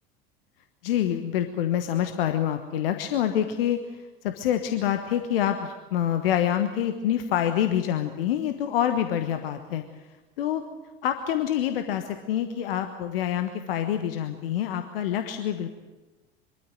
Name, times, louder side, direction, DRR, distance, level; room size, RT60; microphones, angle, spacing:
voice 1, 0.8-9.8 10.4-10.6 11.0-15.7, left 10 dB, 65° left, 7 dB, 1.3 m, -26 dB
23.5 x 13.5 x 9.0 m, 1.2 s
figure-of-eight pair, 75°, 31 cm